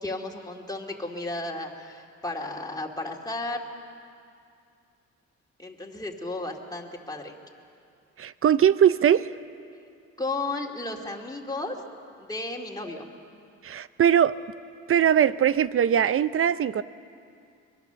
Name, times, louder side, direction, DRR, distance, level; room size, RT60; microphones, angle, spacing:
voice 1, 0.0-3.6 5.6-7.3 10.2-11.8 12.2-13.1, left 2 dB, 10° left, 0 dB, 2.5 m, -33 dB
voice 2, 8.2-9.3 13.6-14.4 14.9-16.8, right 9 dB, 45° right, 15 dB, 0.7 m, -21 dB
23.5 x 20.5 x 7.0 m, 2.4 s
cardioid pair, 90°, 30 cm